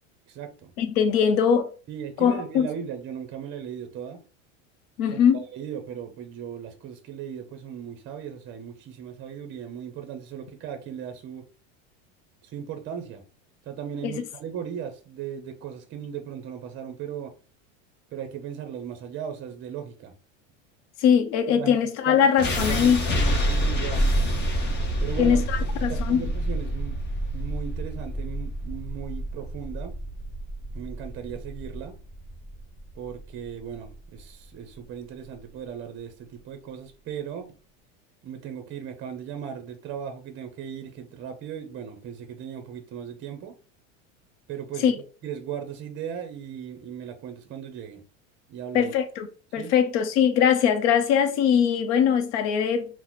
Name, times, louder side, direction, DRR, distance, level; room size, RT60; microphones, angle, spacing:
voice 1, 0.3-0.7 1.9-4.2 5.1-11.5 12.4-13.2 13.7-17.3 18.1-20.1 21.5-21.8 22.0-24.1 25.0-27.0 27.3-29.9 30.7-32.0 33.0-37.5 38.2-43.6 44.5-44.9 45.2-48.0 48.5-48.9 49.5-49.7, right 8 dB, 30° right, 0.6 m, -37 dB
voice 2, 0.8-1.7 2.2-2.7 5.0-5.4 14.0-14.2 21.0-23.0 25.2-26.2 44.8-45.0 48.7-49.3 49.5-53.0, left 8 dB, 60° left, 0.7 m, -21 dB
sound 1, 22.4-34.4, equal, 30° left, 0.8 m, -28 dB
2.8 x 2.1 x 3.9 m
supercardioid pair, 110°, 38 cm